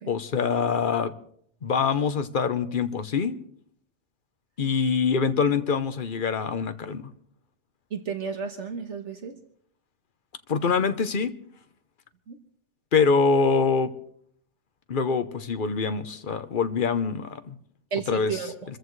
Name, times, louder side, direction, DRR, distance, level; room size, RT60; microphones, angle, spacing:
voice 1, 0.1-1.1 1.6-3.4 4.6-7.1 10.5-11.3 12.9-13.9 14.9-17.5 18.1-18.4, left 5 dB, 45° left, 10 dB, 1.0 m, -24 dB
voice 2, 7.9-9.3 12.3-12.4 17.9-18.5, right 6 dB, 70° right, 6 dB, 1.6 m, -32 dB
26.0 x 14.5 x 3.2 m, 0.62 s
omnidirectional pair, 1.2 m